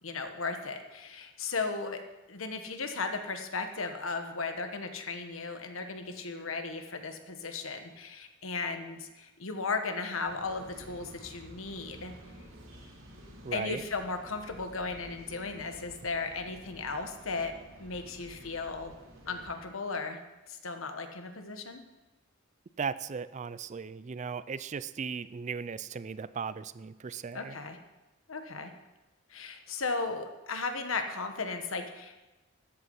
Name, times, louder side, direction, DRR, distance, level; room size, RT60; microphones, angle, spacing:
voice 1, 0.0-2.0 2.3-12.1 13.5-18.9 19.3-20.2 20.5-21.8 27.3-27.8 28.3-28.7 29.3-32.2, left 4 dB, 85° left, 6 dB, 1.3 m, -36 dB
sound 1, 10.2-19.5, equal, 75° right, 2.4 m, -52 dB
voice 2, 13.4-13.8 22.8-27.6, right 5 dB, 35° right, 16 dB, 0.4 m, -37 dB
13.0 x 8.5 x 5.5 m, 1.1 s
head